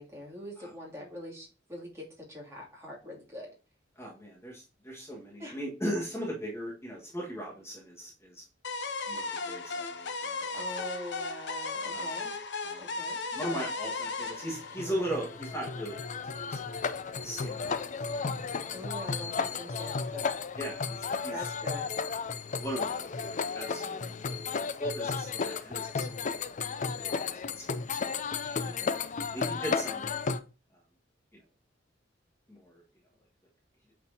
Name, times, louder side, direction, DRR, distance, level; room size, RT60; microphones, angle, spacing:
voice 1, 0.0-3.5 5.4-5.6 10.5-12.3 12.8-13.2 18.7-20.3 21.3-21.9 28.6-29.0, equal, 15° right, -4 dB, 2.6 m, -43 dB
voice 2, 3.9-8.4 9.1-10.8 11.9-12.1 12.6-13.0 13.3-17.8 18.9-19.0 20.6-21.3 22.6-23.0 23.5-24.2 24.8-26.5 26.8-27.8 28.4-28.6 29.3-30.1 31.3-31.4 32.5-32.8, equal, 15° left, -3 dB, 1.6 m, -39 dB
sound 1, 8.6-15.6, left 3 dB, 65° left, 0.9 m, -36 dB
sound 2, 14.2-30.4, left 5 dB, 40° left, 0.5 m, -34 dB
8.3 x 4.4 x 2.8 m, 0.32 s
head